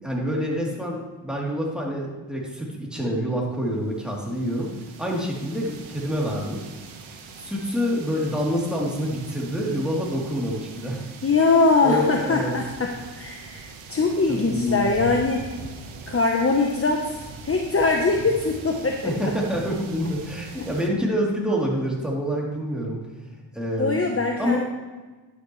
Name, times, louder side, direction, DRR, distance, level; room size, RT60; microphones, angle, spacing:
voice 1, 0.0-4.7 5.0-6.6 7.4-11.0 11.8-12.5 14.3-14.9 19.0-23.0 23.5-24.0 24.4-24.6, equal, ahead, -3 dB, 3.3 m, -27 dB
sound 1, 3.8-20.9, right 4 dB, 85° right, 1.4 m, -42 dB
voice 2, 11.2-15.5 16.1-19.3 20.6-20.7 23.8-24.6, left 3 dB, 30° left, 2 dB, 1.1 m, -22 dB
11.5 x 8.9 x 3.3 m, 1.3 s
cardioid pair, 65°, 47 cm